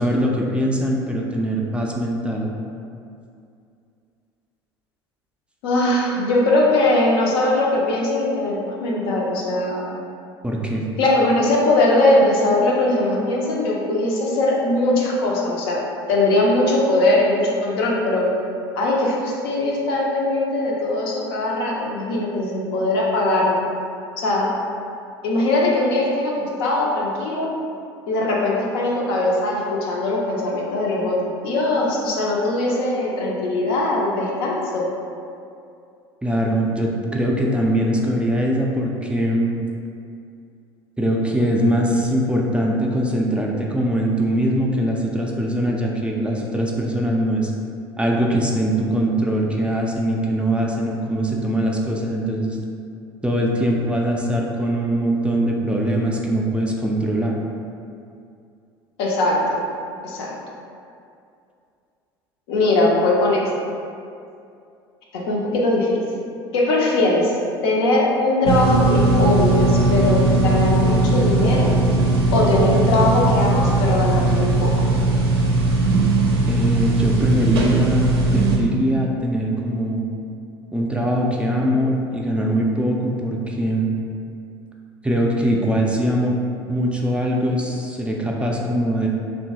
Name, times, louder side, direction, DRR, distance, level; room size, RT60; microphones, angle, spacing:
voice 1, 0.0-2.5 10.4-10.8 36.2-39.6 41.0-47.5 48.0-52.6 53.2-57.4 76.5-80.0 80.7-84.0 85.0-86.4 86.7-89.1, right 1 dB, 10° right, -2 dB, 0.3 m, -22 dB
voice 2, 5.6-9.9 11.0-15.8 16.1-18.3 18.7-23.6 24.2-24.5 25.2-27.5 28.1-34.9 59.0-59.6 60.0-60.4 62.5-63.5 65.1-66.0 66.5-67.4 67.6-71.7 72.3-74.7, left 2 dB, 70° left, -3 dB, 0.5 m, -20 dB
sound 1, 68.4-78.6, right 2 dB, 80° right, 0.4 m, -18 dB
2.8 x 2.2 x 2.8 m, 2.5 s
figure-of-eight pair, 65°, 13 cm